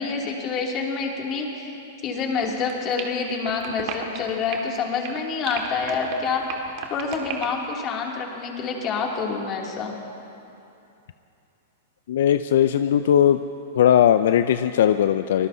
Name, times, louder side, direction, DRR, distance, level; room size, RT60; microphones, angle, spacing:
voice 1, 0.0-1.8 2.0-6.4 6.9-10.0, left 5 dB, 35° left, -1 dB, 2.6 m, -27 dB
sound 1, 2.4-4.8 5.0-7.7, right 8 dB, 50° right, 1.9 m, -34 dB
voice 2, 12.1-13.4 13.7-15.5, left 10 dB, 75° left, 10 dB, 0.4 m, -18 dB
25.0 x 19.0 x 2.8 m, 2.8 s
hypercardioid pair, 130°, 0 cm